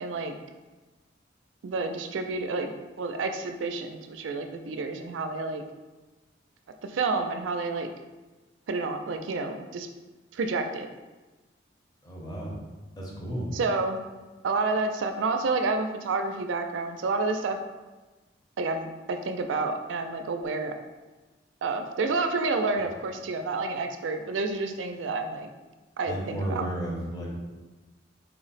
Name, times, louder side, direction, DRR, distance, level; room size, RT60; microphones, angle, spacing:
voice 1, 0.0-0.3 1.6-2.7 3.0-5.6 6.8-7.9 8.7-9.9 10.3-10.9 13.5-14.0 14.4-17.6 18.6-20.8 21.6-25.5 26.0-26.7, right 3 dB, 80° right, 6 dB, 0.4 m, -29 dB
voice 2, 12.0-12.6 13.0-13.5 26.0-27.4, right 1 dB, 20° left, -3 dB, 0.7 m, -33 dB
4.3 x 2.0 x 4.0 m, 1.2 s
head